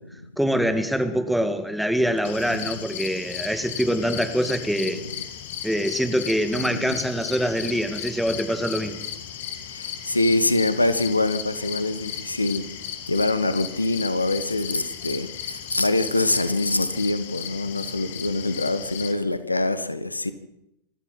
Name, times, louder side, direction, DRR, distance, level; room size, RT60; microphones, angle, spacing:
voice 1, 0.4-5.0 5.6-9.0, equal, ahead, 2.3 m, -24 dB
sound 1, 2.2-19.1, left 9 dB, 55° left, 2.3 m, -36 dB
voice 2, 2.5-2.8 6.7-6.9 9.7-12.7 13.1-20.3, left 2 dB, 85° left, 1.3 m, -24 dB
25.5 x 14.0 x 7.7 m
figure-of-eight pair, 90°, 0 cm